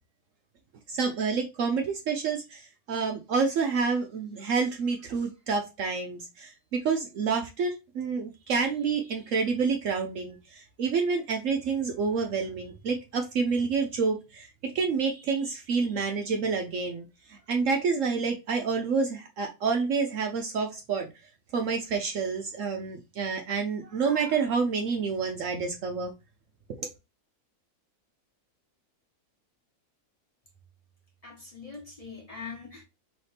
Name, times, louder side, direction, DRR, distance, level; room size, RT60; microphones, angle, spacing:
voice 1, 0.9-21.1 21.5-26.1 26.8-26.9, right 5 dB, 65° right, 0.9 m, -28 dB
voice 2, 31.2-32.8, left 5 dB, 25° left, 1.2 m, -42 dB
4.2 x 3.2 x 3.3 m
omnidirectional pair, 1.6 m